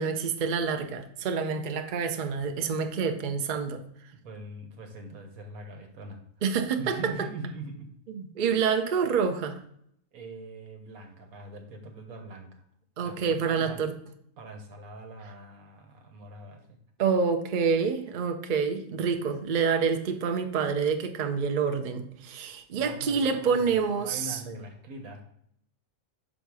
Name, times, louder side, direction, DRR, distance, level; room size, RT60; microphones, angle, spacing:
voice 1, 0.0-3.8 6.4-7.0 8.1-9.6 13.0-13.9 17.0-24.4, right 6 dB, 50° right, 7 dB, 0.6 m, -27 dB
voice 2, 4.2-6.2 6.8-7.9 10.1-12.6 13.0-13.8 14.4-16.8 22.7-25.2, right 2 dB, 85° right, 4 dB, 1.6 m, -42 dB
6.3 x 4.0 x 4.8 m, 0.70 s
omnidirectional pair, 1.5 m